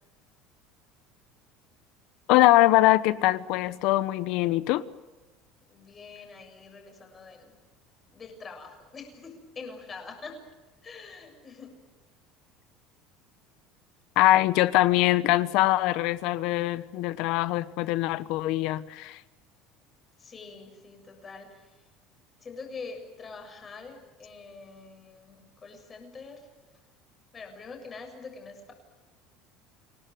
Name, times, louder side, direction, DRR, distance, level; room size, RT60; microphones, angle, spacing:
voice 1, 2.3-4.8 14.2-19.2, left 16 dB, 65° left, 1.1 m, -23 dB
voice 2, 5.7-7.5 8.1-10.4 10.8-11.7 20.2-21.8 22.4-26.5 27.3-28.7, left 4 dB, 25° left, 7.1 m, -44 dB
28.5 x 18.5 x 9.4 m
cardioid pair, 145°, 0 cm